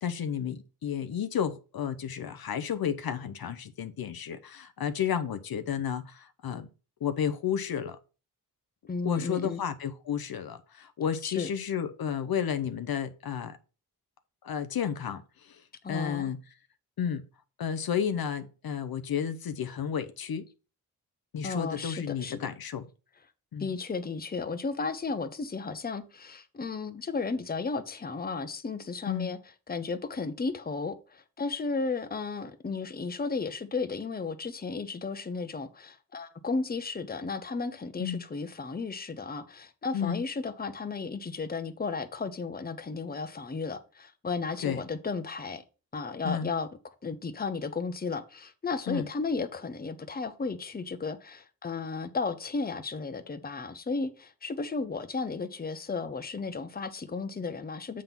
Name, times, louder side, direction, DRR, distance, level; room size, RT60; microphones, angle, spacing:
voice 1, 0.0-6.7 7.0-8.0 9.0-13.6 14.4-15.6 15.9-16.4 17.0-17.2 17.6-20.4 21.3-22.9 23.5-23.7 29.1-29.3 38.0-38.2 39.9-40.2 44.6-44.8 46.2-46.5 48.9-49.1, left 8 dB, 70° left, 0.7 m, -32 dB
voice 2, 8.9-9.6 11.2-11.5 15.8-16.3 21.4-22.5 23.6-29.4 29.7-45.6 45.9-46.7 47.0-58.0, left 4 dB, 25° left, 0.8 m, -34 dB
7.5 x 3.7 x 5.8 m
wide cardioid pair, 90°, 37 cm